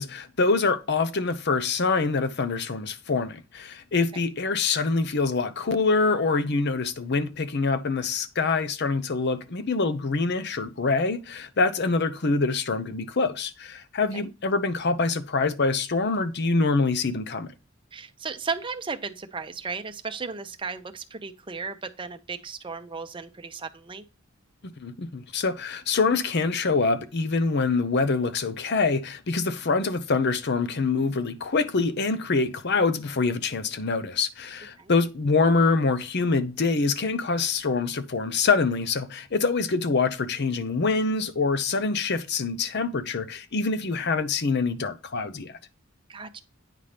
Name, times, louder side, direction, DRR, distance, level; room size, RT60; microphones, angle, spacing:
voice 1, 0.0-17.5 24.8-45.6, left 4 dB, 55° left, 0.7 m, -25 dB
voice 2, 17.9-24.0 34.8-34.9 46.1-46.4, right 5 dB, 25° right, 0.7 m, -35 dB
9.0 x 5.6 x 3.3 m
head